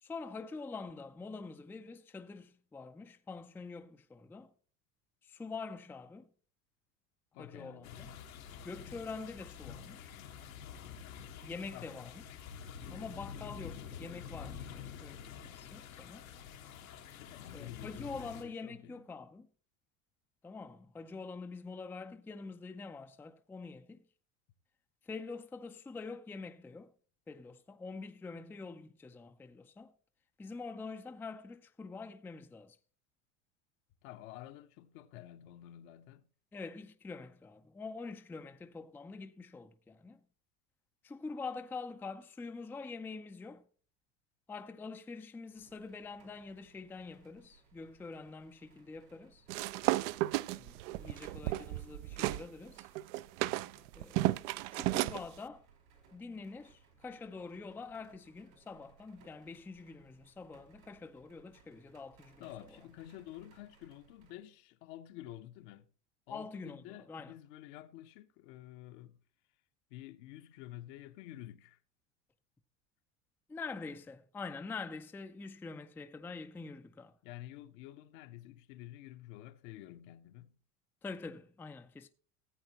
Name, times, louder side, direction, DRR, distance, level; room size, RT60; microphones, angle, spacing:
voice 1, 0.0-4.5 5.2-6.3 7.4-8.1 8.6-10.2 11.4-12.1 12.9-16.3 17.5-19.5 20.4-24.0 25.0-26.9 27.3-29.9 30.4-32.8 36.5-40.2 41.0-43.6 44.5-49.5 50.5-52.9 53.9-54.4 54.7-55.7 56.1-62.4 66.3-67.3 73.5-77.2 81.0-82.1, left 4 dB, 5° left, 0.4 m, -45 dB
voice 2, 7.3-8.1 11.7-12.1 17.2-19.0 34.0-36.2 62.4-65.9 66.3-69.2 69.9-71.8 77.2-80.6, left 13 dB, 60° left, 0.9 m, -50 dB
sound 1, 7.8-18.4, left 8 dB, 90° left, 1.5 m, -48 dB
sound 2, 45.5-64.4, right 5 dB, 80° right, 4.4 m, -65 dB
sound 3, 49.5-52.4 52.8-55.2, right 17 dB, 65° right, 0.5 m, -33 dB
14.5 x 7.9 x 2.9 m
hypercardioid pair, 95°, 40 cm